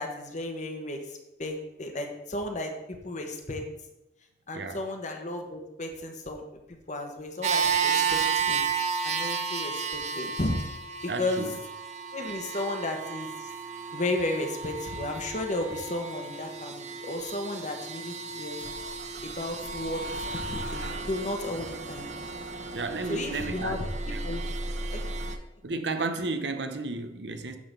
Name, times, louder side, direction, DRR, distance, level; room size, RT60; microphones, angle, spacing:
voice 1, 0.0-2.7 3.0-3.6 4.5-6.4 6.9-8.6 9.0-10.6 11.0-11.5 12.1-13.5 13.9-18.6 19.2-20.0 20.3-22.1 23.1-24.4 24.9-25.4, left 2 dB, 40° left, 4 dB, 1.3 m, -34 dB
sound 1, 7.4-25.4, right 6 dB, 40° right, 0.8 m, -33 dB
voice 2, 11.1-11.5 22.7-24.2 25.6-27.6, right 3 dB, 70° right, 8 dB, 0.9 m, -33 dB
Bus / Engine starting, 18.6-25.3, right 1 dB, 85° right, 1.3 m, -38 dB
9.8 x 3.9 x 6.7 m, 0.93 s
head